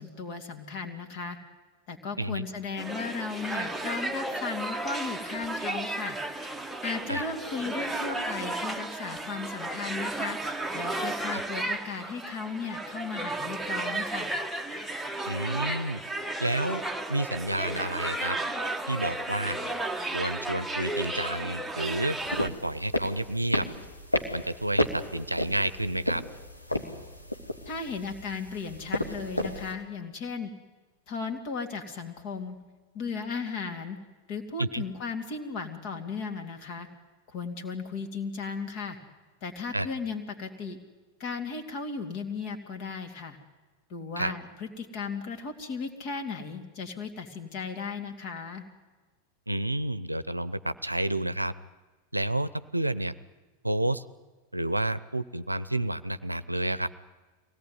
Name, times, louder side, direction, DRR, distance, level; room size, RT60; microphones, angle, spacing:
voice 1, 0.0-1.4 1.9-6.2 6.8-10.4 10.7-14.3 27.6-30.5 31.1-32.6 32.9-34.0 34.3-36.9 37.3-39.0 39.4-40.8 41.2-43.4 43.9-48.6, left 5 dB, 45° left, 4 dB, 2.9 m, -36 dB
sound 1, 2.8-22.5, right 2 dB, ahead, 1.3 m, -33 dB
voice 2, 15.3-16.0 16.4-16.8 17.1-18.4 18.9-19.6 20.1-23.7 24.3-26.2 34.6-34.8 39.7-39.9 44.2-44.3 49.5-51.5 52.1-53.2 53.6-54.0 54.5-56.9, right 1 dB, 85° right, 15 dB, 0.6 m, -30 dB
sound 2, 22.2-29.7, left 1 dB, 85° left, 2.1 m, -33 dB
23.5 x 17.5 x 9.6 m, 1.3 s
figure-of-eight pair, 90°, 0 cm